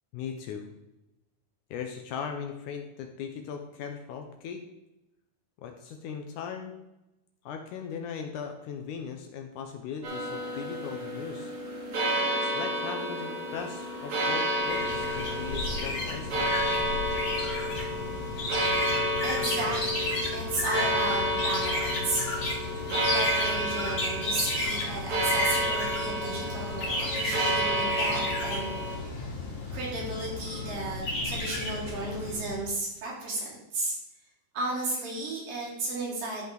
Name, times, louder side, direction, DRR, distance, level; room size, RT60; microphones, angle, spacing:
voice 1, 0.1-0.7 1.7-4.6 5.6-6.7 7.5-11.5 12.4-16.5, left 7 dB, 75° left, 4 dB, 2.0 m, -38 dB
sound 1, 10.0-29.0, equal, 45° right, 2.6 m, -30 dB
sound 2, 14.6-32.6, left 2 dB, 55° left, 4.5 m, -33 dB
voice 2, 19.2-29.1 29.7-34.0 34.5-36.4, right 2 dB, 70° right, -5 dB, 4.5 m, -34 dB
13.5 x 5.5 x 3.9 m, 0.94 s
omnidirectional pair, 4.1 m